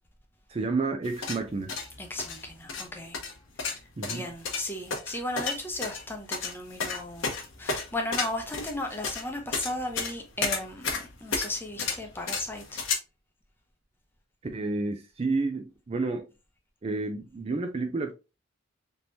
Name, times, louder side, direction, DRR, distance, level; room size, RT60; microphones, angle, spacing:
voice 1, 0.5-1.7 4.0-4.3 14.5-16.3 16.8-18.1, right 3 dB, 30° right, 0.4 m, -30 dB
sound 1, 1.0-12.9, left 4 dB, 80° left, 0.9 m, -32 dB
voice 2, 2.0-3.2 3.7-3.8 4.1-7.3 7.6-12.8, left 1 dB, 10° left, 0.7 m, -35 dB
3.5 x 2.9 x 2.6 m
head